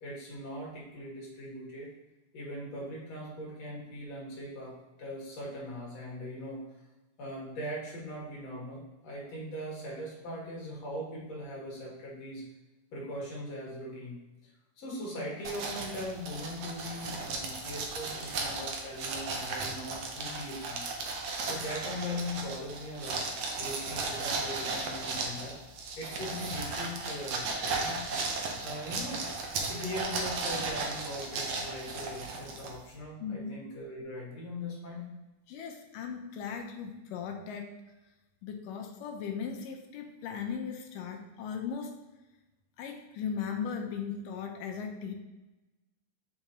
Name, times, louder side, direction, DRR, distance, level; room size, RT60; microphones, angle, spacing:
voice 1, 0.0-1.9 2.3-4.7 5.0-6.6 7.2-12.4 12.9-14.5 14.8-20.8 21.1-21.2 21.4-23.3 23.6-25.6 26.0-28.0 28.6-29.2 29.7-35.1, left 1 dB, 55° left, -4 dB, 2.5 m, -40 dB
sound 1, 15.4-32.9, right 3 dB, 80° right, 1.3 m, -36 dB
voice 2, 33.2-33.5 35.5-37.7 38.4-41.9 42.8-45.1, left 6 dB, 80° left, 3 dB, 2.2 m, -37 dB
6.5 x 5.9 x 3.0 m, 1.0 s
omnidirectional pair, 4.0 m